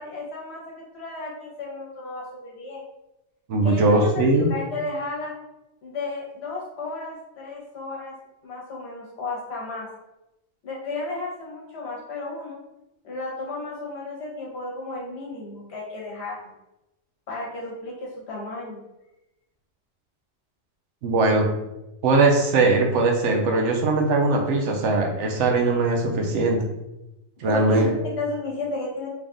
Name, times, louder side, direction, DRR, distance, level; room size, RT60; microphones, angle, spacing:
voice 1, 0.0-2.8 3.6-5.3 5.8-8.1 8.4-9.9 10.6-12.6 13.0-16.5 17.3-18.8 27.4-27.9 28.2-29.1, left 2 dB, 60° left, -3 dB, 1.2 m, -33 dB
voice 2, 3.5-4.5 21.0-21.5 22.0-26.6 27.4-27.9, right 3 dB, 70° right, 2 dB, 1.0 m, -20 dB
3.4 x 2.4 x 3.6 m, 0.94 s
omnidirectional pair, 1.3 m